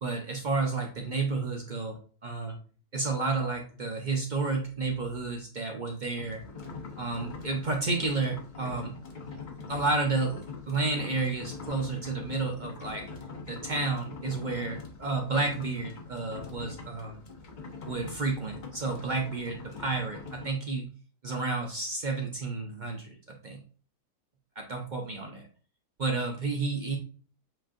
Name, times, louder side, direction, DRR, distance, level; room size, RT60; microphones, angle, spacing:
voice 1, 0.0-2.6 2.9-6.4 7.0-8.9 9.7-13.1 13.5-17.2 17.9-20.9 21.2-23.2 23.4-23.6 24.6-25.5 26.0-27.0, right 3 dB, 55° right, 1 dB, 0.5 m, -31 dB
sound 1, 6.2-20.5, left 4 dB, 50° left, 0.5 m, -43 dB
7.7 x 2.6 x 2.4 m, 0.41 s
omnidirectional pair, 1.7 m